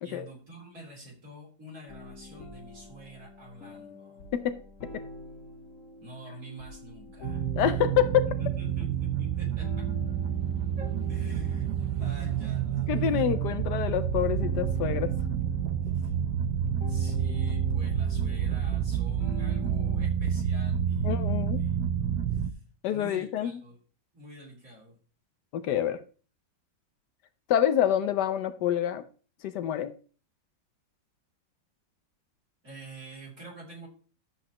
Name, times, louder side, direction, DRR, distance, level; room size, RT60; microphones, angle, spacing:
voice 1, 0.0-4.2 6.0-7.4 8.3-9.9 10.8-11.7 12.0-13.2 15.9-16.1 16.9-21.9 22.3-22.6 22.9-23.8 24.1-25.0 32.6-33.9, right 1 dB, 45° right, 3.7 m, -46 dB
sound 1, 1.9-20.1, left 3 dB, 45° left, 1.5 m, -45 dB
sound 2, 7.2-22.5, right 9 dB, 70° right, 1.2 m, -29 dB
voice 2, 7.6-8.3 12.9-15.1 21.0-21.6 22.8-23.5 25.5-26.0 27.5-29.0 29.4-29.9, left 10 dB, 70° left, 1.2 m, -27 dB
11.5 x 8.1 x 2.9 m
omnidirectional pair, 2.0 m